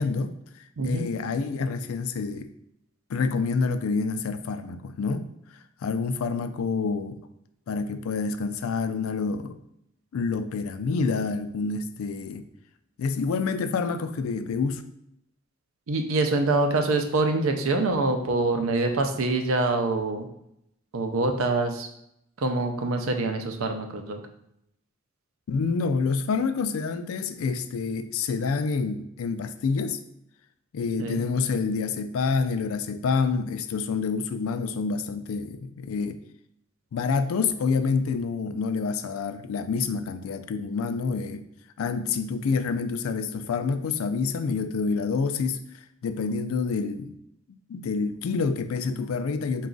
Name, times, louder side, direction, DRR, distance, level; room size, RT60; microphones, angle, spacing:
voice 1, 0.0-2.5 3.1-5.3 5.8-7.2 7.7-9.6 10.1-12.5 13.0-14.8 25.5-30.0 30.7-36.2 36.9-41.4 41.8-47.2 47.5-49.7, left 4 dB, 85° left, 10 dB, 0.4 m, -28 dB
voice 2, 0.8-1.1 15.9-20.3 20.9-21.9 22.4-24.2 31.0-31.2, right 2 dB, 80° right, 5 dB, 0.5 m, -25 dB
4.0 x 2.3 x 3.8 m, 0.77 s
head